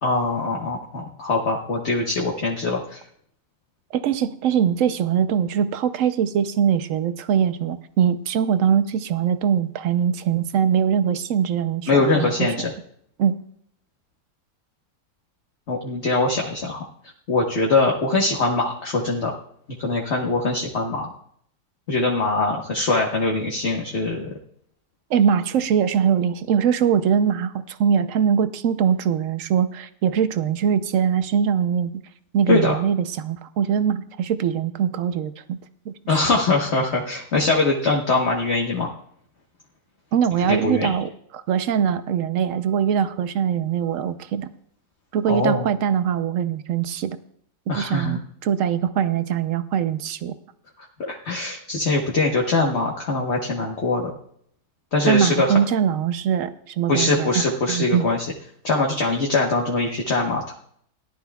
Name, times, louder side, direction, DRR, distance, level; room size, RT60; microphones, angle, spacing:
voice 1, 0.0-3.0 11.9-12.7 15.7-16.8 17.3-19.3 19.8-21.1 21.9-24.3 32.5-32.8 36.1-38.9 40.5-40.9 45.3-45.7 47.7-48.2 51.1-54.1 54.9-55.6 56.9-58.3 58.6-60.5, left 3 dB, 45° left, -1 dB, 1.4 m, -22 dB
voice 2, 3.9-12.5 13.2-13.4 25.1-32.0 32.3-35.6 35.9-36.2 40.1-44.5 45.1-47.2 47.7-50.4 55.1-58.1, right 8 dB, 60° right, 11 dB, 0.9 m, -22 dB
18.5 x 11.5 x 2.3 m, 0.65 s
omnidirectional pair, 1.8 m